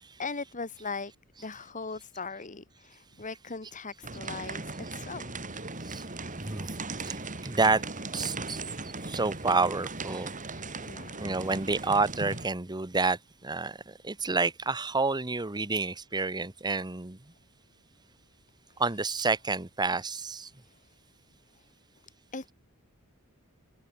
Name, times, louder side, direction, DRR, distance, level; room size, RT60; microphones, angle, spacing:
voice 1, 0.2-1.1 1.4-5.3 8.7-9.0 10.8-11.3 21.6-21.7 22.3-22.5, left 4 dB, 35° left, 2.0 m, -39 dB
sound 1, 4.0-12.5, right 3 dB, 35° right, 6.0 m, -38 dB
voice 2, 6.4-6.8 7.0-7.9 8.1-8.6 9.0-10.3 11.2-17.2 18.8-20.5, right 3 dB, 20° right, 1.0 m, -29 dB
head